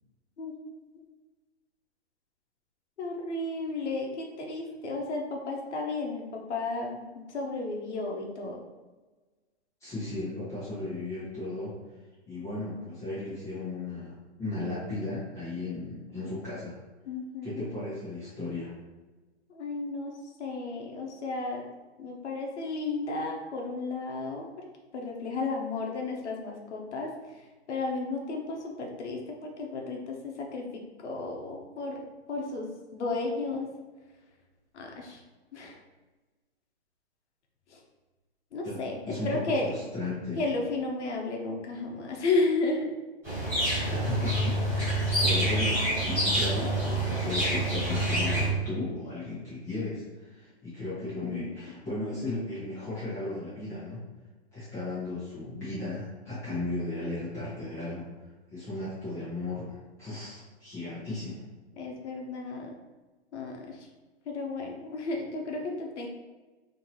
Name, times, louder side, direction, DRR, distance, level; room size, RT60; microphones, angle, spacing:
voice 1, 0.4-0.7 3.0-8.6 17.1-17.7 19.5-21.6 22.0-24.4 24.9-27.1 27.7-33.7 34.7-35.2 35.5-35.8 37.7-37.8 38.5-39.7 40.4-42.9 51.2-51.5 61.8-62.7 63.3-63.9 64.3-66.1, left 3 dB, 90° left, 0 dB, 0.9 m, -33 dB
voice 2, 9.8-11.7 12.2-16.7 17.4-18.7 38.6-40.4 43.9-54.1 54.5-58.1 58.5-61.4, left 2 dB, 10° left, -13 dB, 0.9 m, -35 dB
sound 1, 43.2-48.5, right 1 dB, 5° right, 1.5 m, -27 dB
3.7 x 2.9 x 2.9 m, 1.2 s
hypercardioid pair, 165°, 33 cm